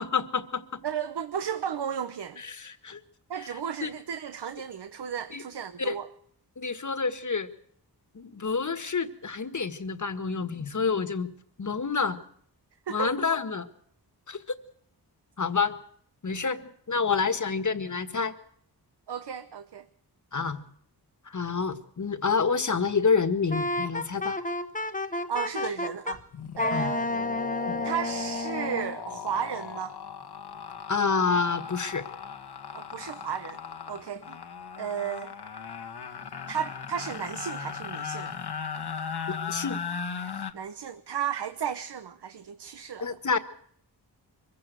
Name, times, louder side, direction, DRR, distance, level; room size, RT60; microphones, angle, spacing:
voice 1, 0.0-0.8 2.4-3.0 3.8-3.9 5.3-5.4 5.8-6.0 6.6-7.5 8.2-11.3 11.6-12.2 12.9-13.7 14.3-14.4 15.4-15.7 16.2-18.4 20.3-20.6 21.3-24.4 26.7-26.9 27.7-27.8 30.9-32.0 39.5-39.8 43.0-43.4, left 5 dB, 45° left, 1.7 m, -28 dB
voice 2, 0.8-2.4 3.3-6.1 12.9-13.2 19.1-19.9 25.3-26.2 26.6-27.1 27.8-30.0 32.7-33.6 33.9-34.4 34.8-35.3 36.5-38.3 40.5-43.2, right 8 dB, 80° right, 1.0 m, -34 dB
Wind instrument woodwind instrument, 23.5-26.2 26.6-29.0, left 2 dB, 20° left, 1.1 m, -31 dB
sound 1, 25.6-25.8 26.1-40.5, left 6 dB, 75° left, 1.5 m, -38 dB
24.0 x 16.0 x 8.1 m
wide cardioid pair, 110°, 40 cm